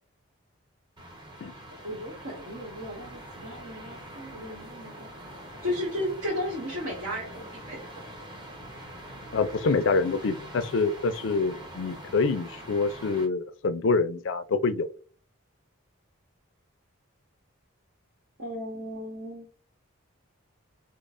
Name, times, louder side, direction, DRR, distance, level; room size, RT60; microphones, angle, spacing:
sound 1, 1.0-13.3, right 1 dB, 20° right, 0.9 m, -44 dB
voice 1, 1.7-5.1 5.6-7.9 18.4-19.5, left 1 dB, 70° right, 1.2 m, -35 dB
voice 2, 9.3-14.9, left 4 dB, 60° left, 0.4 m, -26 dB
5.2 x 2.0 x 2.4 m
head